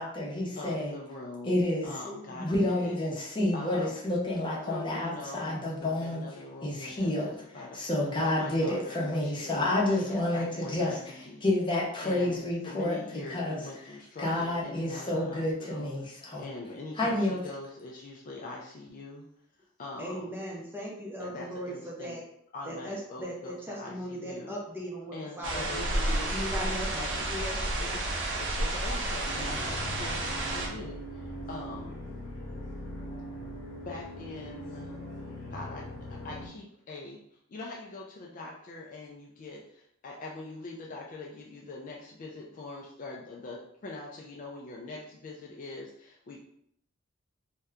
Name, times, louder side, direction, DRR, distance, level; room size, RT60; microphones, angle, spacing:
voice 1, 0.0-0.9 1.4-6.3 6.6-7.3 7.7-11.1 11.4-13.0 13.3-13.6 14.2-16.4 17.0-17.4, left 1 dB, 25° left, -4 dB, 0.8 m, -29 dB
voice 2, 0.6-2.9 3.5-3.9 4.6-7.8 8.2-11.4 12.0-15.9 16.4-19.3 19.8-20.4 21.2-22.2 22.5-24.5 25.1-27.3 27.6-28.1 28.3-31.9 33.8-35.0 35.5-37.2 37.5-46.4, left 2 dB, 40° left, -2 dB, 0.4 m, -43 dB
voice 3, 20.0-22.2 22.7-27.6, equal, 10° right, -3 dB, 0.5 m, -38 dB
sound 1, 25.4-30.7, right 1 dB, 60° right, 0.6 m, -31 dB
sound 2, 29.3-36.5, left 1 dB, 75° left, 0.9 m, -41 dB
2.7 x 2.2 x 3.4 m, 0.70 s
head